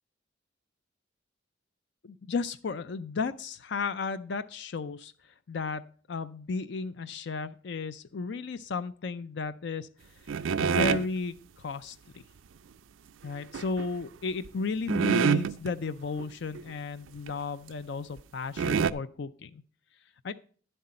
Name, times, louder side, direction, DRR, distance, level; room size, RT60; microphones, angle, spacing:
voice 1, 2.0-10.1 10.6-12.2 13.2-19.6 20.2-20.3, left 4 dB, 60° left, 13 dB, 0.5 m, -34 dB
sound 1, 10.3-11.1 13.5-13.9 14.4-14.5 14.9-15.7 16.2-16.3 16.5-16.7 17.3-17.4 18.2-18.3 18.6-18.9, right 6 dB, 90° right, 0.4 m, -26 dB
10.5 x 7.8 x 4.2 m, 0.44 s
head